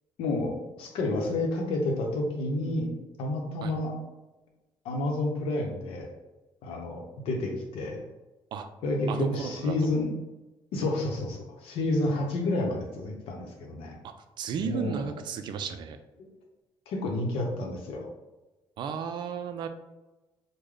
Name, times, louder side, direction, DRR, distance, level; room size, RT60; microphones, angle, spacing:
voice 1, 0.2-2.9 3.2-3.9 4.8-6.1 6.6-8.0 8.8-10.1 10.7-14.0 14.6-15.1 16.2-16.3 16.9-18.1, left 2 dB, 90° left, 1 dB, 0.7 m, -30 dB
voice 2, 9.1-9.9 14.0-16.0 18.8-19.7, right 7 dB, 55° right, 8 dB, 0.3 m, -34 dB
3.2 x 2.1 x 3.7 m, 1.1 s
cardioid pair, 155°, 9 cm